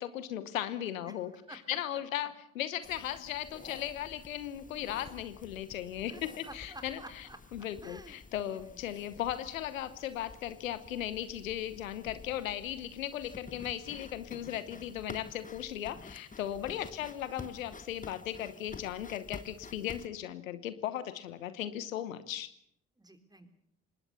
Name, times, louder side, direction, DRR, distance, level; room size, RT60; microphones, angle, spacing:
voice 1, 0.0-1.3 1.7-7.0 7.5-22.5, left 11 dB, 80° left, 14 dB, 1.0 m, -37 dB
voice 2, 1.0-2.0 6.0-8.8 16.6-17.1 23.0-23.5, right 1 dB, 10° right, 8 dB, 3.7 m, -52 dB
sound 1, 2.8-20.1, left 4 dB, 20° left, 1.3 m, -51 dB
25.5 x 20.5 x 6.9 m, 0.72 s
figure-of-eight pair, 45°, 39 cm